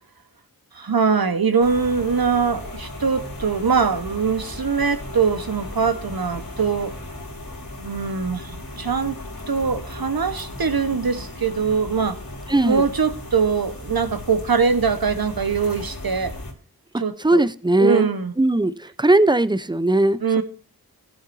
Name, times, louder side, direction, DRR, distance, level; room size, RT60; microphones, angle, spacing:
voice 1, 0.7-6.9 7.8-9.2 9.5-12.2 12.6-16.3 17.0-17.4 17.8-18.3 20.2-20.4, right 5 dB, 70° right, 1.3 m, -22 dB
sound 1, 1.6-16.5, left 1 dB, 60° left, 3.4 m, -36 dB
voice 2, 12.5-12.8 16.9-18.1 18.4-20.2, right 2 dB, 10° right, 0.6 m, -19 dB
16.5 x 7.9 x 2.7 m
wide cardioid pair, 60°, 37 cm